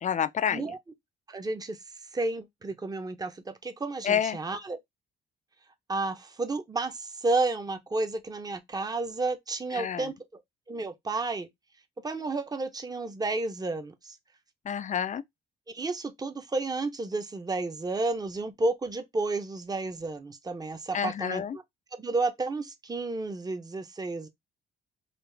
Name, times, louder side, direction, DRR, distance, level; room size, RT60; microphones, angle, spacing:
voice 1, 0.0-0.7 4.0-4.4 9.7-10.1 14.7-15.2 20.9-21.6, left 8 dB, 40° left, 0.4 m, -28 dB
voice 2, 1.3-1.8 2.1-4.8 5.9-10.1 10.7-11.5 12.0-14.2 15.7-21.6 21.9-24.3, right 3 dB, 20° right, 0.7 m, -31 dB
4.0 x 2.5 x 3.3 m
cardioid pair, 90°, 20 cm